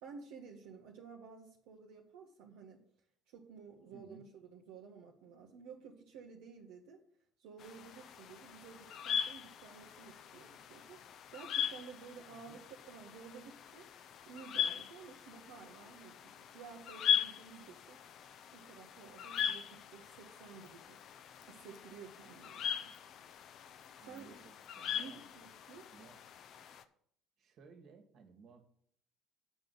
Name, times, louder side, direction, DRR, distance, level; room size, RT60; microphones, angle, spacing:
voice 1, 0.0-2.8 3.3-7.0 7.4-11.0 11.3-13.9 14.2-18.0 18.5-21.1 21.5-22.9 24.0-24.5 25.0-25.9, right 6 dB, 70° right, -2 dB, 1.2 m, -53 dB
voice 2, 3.9-4.2 12.3-12.6 19.4-19.5 24.0-25.2 25.9-26.2 27.4-28.6, right 5 dB, 55° right, 6 dB, 2.0 m, -58 dB
sound 1, 7.6-26.8, left 8 dB, 55° left, 0.8 m, -40 dB
8.7 x 5.3 x 7.8 m, 0.64 s
hypercardioid pair, 65°, 0 cm